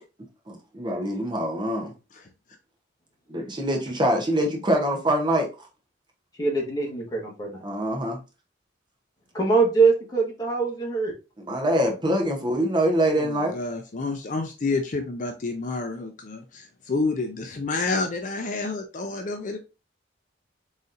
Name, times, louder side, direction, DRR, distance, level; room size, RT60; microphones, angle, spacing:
voice 1, 0.5-1.9 3.3-5.7 7.6-8.2 11.5-13.6, right 1 dB, 25° right, 0.8 m, -24 dB
voice 2, 6.4-7.6 9.3-11.1, right 4 dB, 20° left, 1.3 m, -23 dB
voice 3, 13.2-19.6, left 3 dB, 40° left, 0.5 m, -29 dB
4.0 x 4.0 x 2.5 m
head